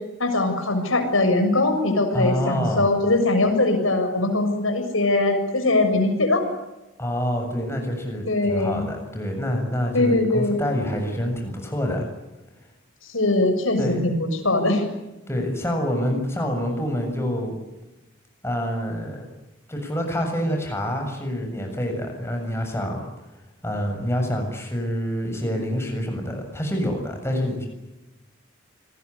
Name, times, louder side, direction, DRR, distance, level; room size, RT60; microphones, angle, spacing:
voice 1, 0.2-6.4 8.3-8.8 9.9-10.6 13.1-14.8, left 2 dB, 90° left, 6 dB, 7.0 m, -21 dB
voice 2, 2.1-2.9 7.0-12.1 13.8-14.1 15.3-17.6 18.4-19.3 19.7-23.0 23.6-27.7, equal, 15° left, 3 dB, 7.4 m, -27 dB
28.0 x 21.0 x 9.8 m, 1.0 s
head